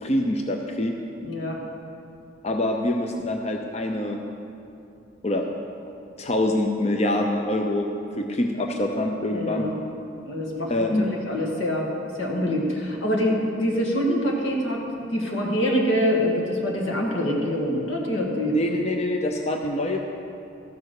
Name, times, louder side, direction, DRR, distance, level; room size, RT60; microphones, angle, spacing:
voice 1, 0.0-1.0 2.4-4.2 5.2-5.5 6.2-7.9 8.2-9.7 10.7-11.1 18.5-20.0, left 1 dB, 35° left, 3 dB, 0.6 m, -25 dB
voice 2, 1.2-1.6 9.3-9.8 10.3-11.9 12.2-18.6, equal, 90° left, -1 dB, 1.9 m, -25 dB
13.5 x 6.7 x 6.5 m, 2.7 s
head